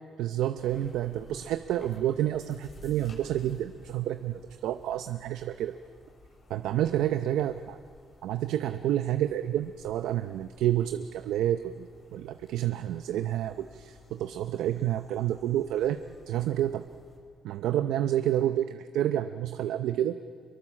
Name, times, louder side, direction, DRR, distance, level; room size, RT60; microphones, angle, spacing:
voice 1, 0.2-5.8 6.5-7.8 8.2-16.0 16.3-16.9 17.4-20.2, right 12 dB, 90° right, 9 dB, 0.6 m, -29 dB
sound 1, 0.6-17.2, left 3 dB, 50° left, 7.2 m, -55 dB
25.5 x 23.0 x 7.4 m, 2.1 s
cardioid pair, 90°, 0 cm